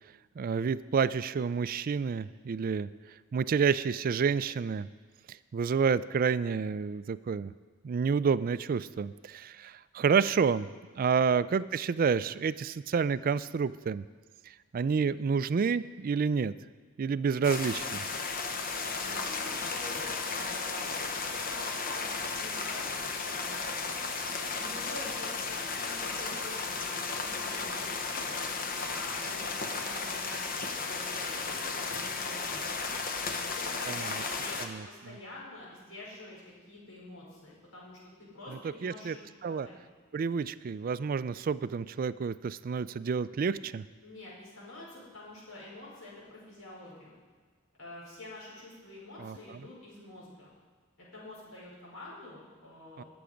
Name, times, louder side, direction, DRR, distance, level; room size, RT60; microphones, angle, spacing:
voice 1, 0.4-2.9 3.3-4.9 5.3-7.5 7.8-10.7 11.0-14.1 14.5-16.5 17.0-18.1 33.9-34.2 34.6-34.9 38.6-39.2 39.4-39.7 40.1-43.8 49.2-49.4 53.0-53.1, right 6 dB, 45° right, 16 dB, 0.3 m, -29 dB
voice 2, 10.9-11.4 19.0-21.0 21.3-24.0 24.6-28.4 28.9-32.9 33.3-39.7 44.0-47.2 47.8-50.5 51.0-53.1, left 2 dB, 80° left, -5 dB, 4.9 m, -47 dB
sound 1, 17.4-34.7, left 4 dB, 45° left, 0.9 m, -34 dB
20.0 x 7.0 x 5.1 m, 1.5 s
head